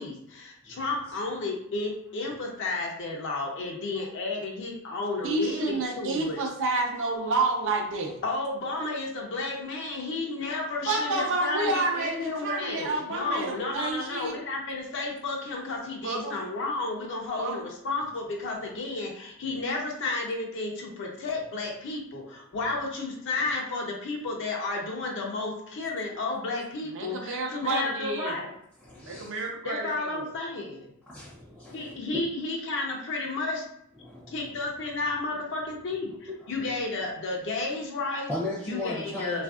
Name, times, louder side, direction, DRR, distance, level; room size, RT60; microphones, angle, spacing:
voice 1, 0.0-6.4 8.2-28.5 29.6-30.9 31.7-33.6 34.3-38.3 38.7-39.4, left 3 dB, 60° left, 0 dB, 0.5 m, -32 dB
voice 2, 5.2-8.2 10.9-14.3 16.0-16.4 17.3-17.5 26.9-28.3 29.0-30.2, right 3 dB, 60° right, 1 dB, 0.6 m, -29 dB
voice 3, 28.8-29.4 31.1-32.2 34.0-34.6 36.4-36.8 38.3-39.4, left 2 dB, 5° right, -7 dB, 0.6 m, -37 dB
3.4 x 2.5 x 2.3 m, 0.73 s
head